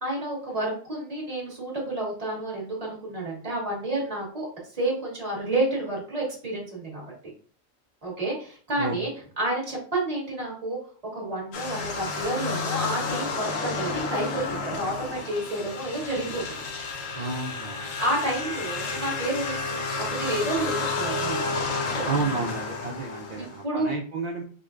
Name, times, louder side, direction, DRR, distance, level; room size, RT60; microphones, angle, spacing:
voice 1, 0.0-4.5 4.7-7.1 8.0-9.1 9.4-10.8 11.1-16.4 18.0-19.8 20.1-21.4 21.8-22.1 23.4-23.9, right 1 dB, 30° right, -4 dB, 1.4 m, -30 dB
sound 1, 11.5-23.6, left 3 dB, 80° left, 1.1 m, -31 dB
voice 2, 17.1-18.0 22.1-24.4, right 4 dB, 80° right, 0 dB, 0.3 m, -31 dB
5.0 x 2.1 x 2.4 m, 0.44 s
omnidirectional pair, 1.3 m